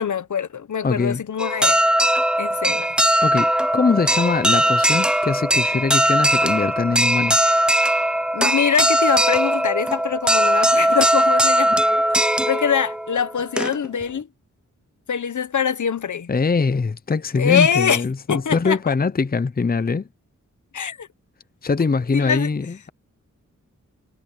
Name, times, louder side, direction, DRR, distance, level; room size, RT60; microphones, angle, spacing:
voice 1, 0.0-1.8 2.4-2.9 8.3-14.3 15.1-16.3 17.4-18.9 20.7-21.1 22.1-22.5, left 7 dB, 70° left, 1.2 m, -24 dB
voice 2, 0.8-1.2 3.2-7.6 16.3-20.1 21.6-22.9, left 4 dB, 30° left, 0.8 m, -22 dB
sound 1, 1.4-14.0, right 1 dB, 5° right, 0.4 m, -19 dB
wide cardioid pair, 75°, 31 cm